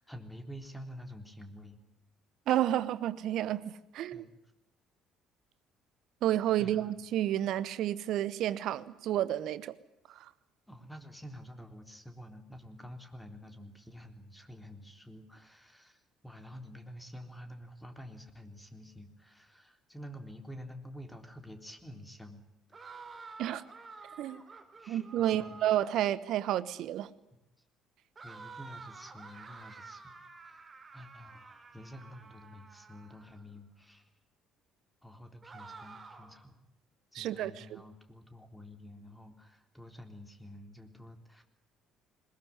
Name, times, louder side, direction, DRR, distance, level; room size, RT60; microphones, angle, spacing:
voice 1, 0.0-1.8 4.1-4.4 6.6-6.9 10.7-22.4 24.8-25.7 28.2-30.0 30.4-30.7 30.9-34.1 35.0-36.6 37.1-41.4, equal, 5° left, 3.7 m, -49 dB
voice 2, 2.5-4.2 6.2-9.7 10.1-10.3 23.4-23.6 24.2-24.4 24.9-27.1 37.1-37.8, right 12 dB, 60° right, 1.0 m, -31 dB
sound 1, 22.7-26.1 28.1-33.4 35.4-36.5, right 4 dB, 30° right, 3.6 m, -50 dB
21.0 x 20.5 x 10.0 m
figure-of-eight pair, 55°, 0 cm